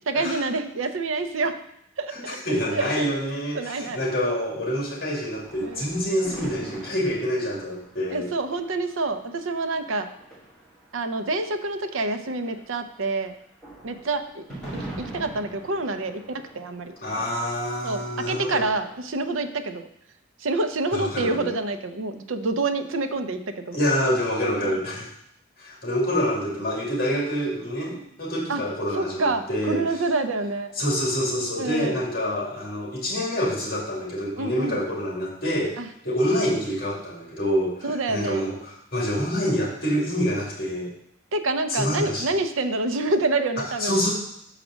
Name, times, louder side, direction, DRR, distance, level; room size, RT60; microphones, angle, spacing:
voice 1, 0.1-1.6 2.0-2.4 2.7-3.1 3.5-4.0 5.6-5.9 8.1-10.1 10.9-13.4 13.8-14.4 15.0-16.9 17.8-19.9 20.4-23.8 24.6-24.8 28.5-28.6 28.9-30.7 31.6-32.0 34.4-34.8 35.8-35.9 37.8-38.4 41.3-43.9, right 2 dB, 85° right, 8 dB, 0.7 m, -27 dB
voice 2, 2.1-8.3 17.0-18.7 20.9-21.5 23.7-25.1 25.6-29.8 30.8-35.8 36.0-40.9 41.7-42.4 43.8-44.1, equal, 50° left, -3 dB, 2.2 m, -26 dB
sound 1, 5.3-11.6 11.9-19.4, right 1 dB, 5° left, 3.0 m, -43 dB
6.5 x 4.9 x 6.2 m, 0.75 s
head